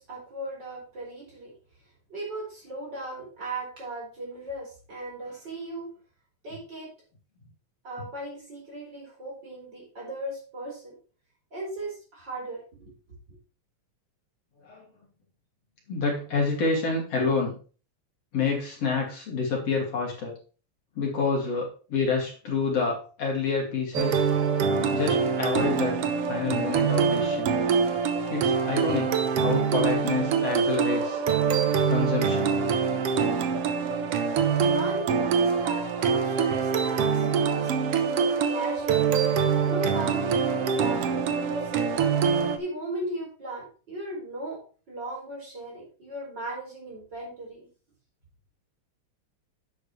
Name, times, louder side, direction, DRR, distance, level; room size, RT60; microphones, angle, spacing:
voice 1, 0.0-1.5 2.1-5.9 6.4-6.9 7.8-11.0 11.5-12.9 13.3-13.4 34.6-39.1 39.7-42.0 42.6-47.7, right 2 dB, 35° right, -3 dB, 5.1 m, -37 dB
voice 2, 15.9-17.6 18.3-20.4 21.0-24.2 24.9-27.5 28.3-31.2 31.9-32.5, left 4 dB, 55° left, -2 dB, 3.5 m, -28 dB
sound 1, 23.9-42.6, right 6 dB, 65° right, 1.7 m, -24 dB
10.5 x 8.2 x 3.2 m, 0.38 s
omnidirectional pair, 3.3 m